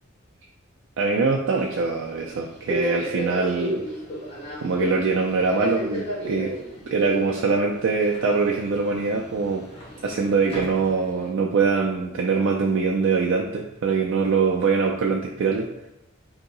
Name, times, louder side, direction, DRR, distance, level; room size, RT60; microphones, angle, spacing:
voice 1, 1.0-3.8 4.6-6.5 6.9-9.6 10.0-15.7, right 4 dB, 65° right, 0 dB, 0.4 m, -23 dB
Subway metro underground, 1.5-11.3, equal, 30° left, 0.8 m, -34 dB
2.8 x 2.7 x 3.8 m, 0.87 s
head